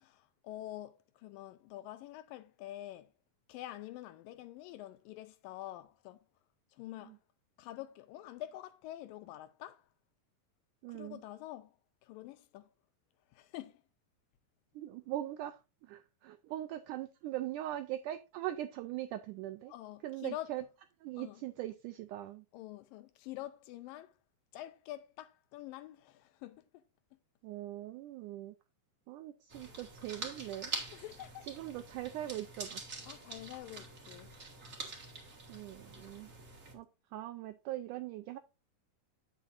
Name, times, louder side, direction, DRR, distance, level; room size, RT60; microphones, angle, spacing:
voice 1, 0.0-3.1 3.5-6.2 6.7-7.2 7.6-9.9 10.9-12.7 13.3-13.8 19.7-20.5 21.2-21.4 22.5-24.2 24.5-26.8 27.1-27.2 30.9-31.5 33.1-34.3, left 14 dB, 80° left, 2.1 m, -47 dB
voice 2, 10.8-11.2 14.7-19.7 20.0-20.6 21.0-22.4 27.4-28.5 29.1-30.7 31.5-32.8 35.5-36.3 36.7-38.4, right 14 dB, 85° right, 1.8 m, -41 dB
sound 1, 29.5-36.7, right 3 dB, 30° right, 1.5 m, -45 dB
9.3 x 8.2 x 2.5 m
omnidirectional pair, 4.3 m